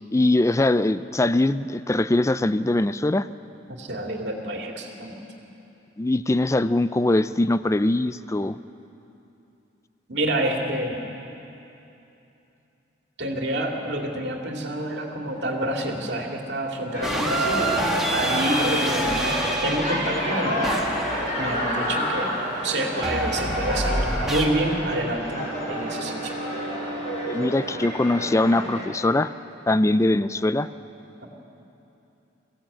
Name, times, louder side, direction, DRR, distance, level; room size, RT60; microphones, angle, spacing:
voice 1, 0.1-3.3 6.0-8.6 27.3-29.3 29.7-30.7, left 2 dB, 15° left, 14 dB, 0.4 m, -22 dB
voice 2, 3.8-5.2 10.1-11.0 13.2-17.8 18.1-19.2 19.6-20.7 21.4-22.3 22.6-26.3, right 1 dB, 65° right, 1 dB, 2.4 m, -28 dB
sound 1, 16.9-28.8, equal, 40° left, 6.7 m, -29 dB
sound 2, 17.0-22.2 23.0-24.4, right 1 dB, ahead, 1.8 m, -28 dB
Wind instrument woodwind instrument, 24.1-28.6, right 2 dB, 70° left, 5.8 m, -39 dB
23.0 x 16.0 x 8.6 m, 2.9 s
head